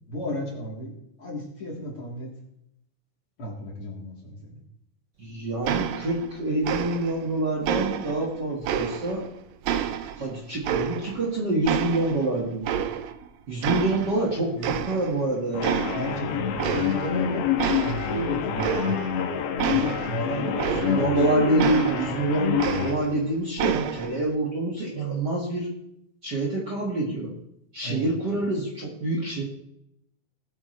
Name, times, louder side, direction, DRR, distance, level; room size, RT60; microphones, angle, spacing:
voice 1, 0.1-2.3 3.4-4.6 13.8-14.0 15.9-17.5 17.8-19.0 19.7-21.1 27.8-28.1 28.3-28.4, equal, 45° left, -3 dB, 4.1 m, -33 dB
voice 2, 5.2-9.2 10.2-12.7 13.5-15.7 20.9-25.7 26.2-27.3 27.7-29.4, right 2 dB, 40° right, -2 dB, 2.1 m, -26 dB
sound 1, 5.6-6.4 6.6-7.3 7.6-9.3 9.6-11.3 11.6-13.3 13.6-14.3 14.6-15.3 15.6-16.2 16.6-17.2 17.6-21.2 21.6-23.2 23.6-24.2, right 9 dB, 75° right, 1.7 m, -29 dB
sound 2, 15.5-23.0, left 8 dB, 65° left, 1.7 m, -27 dB
20.0 x 8.8 x 3.3 m, 0.78 s
omnidirectional pair, 3.6 m